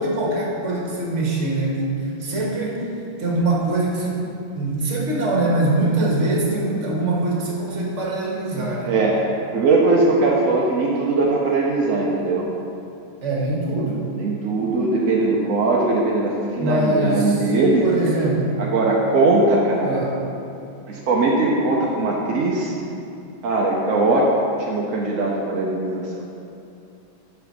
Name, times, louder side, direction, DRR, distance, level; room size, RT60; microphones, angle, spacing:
voice 1, 0.0-4.2 4.5-8.9 13.2-14.1 16.6-17.5 17.8-18.6 19.8-20.2, right 2 dB, 40° right, -3 dB, 1.4 m, -23 dB
voice 2, 8.9-9.3 9.5-12.5 14.2-17.9 18.6-20.0 20.9-22.7 23.4-24.3 24.6-26.2, right 2 dB, 65° right, -3 dB, 0.8 m, -20 dB
6.0 x 5.9 x 5.3 m, 2.7 s
omnidirectional pair, 2.1 m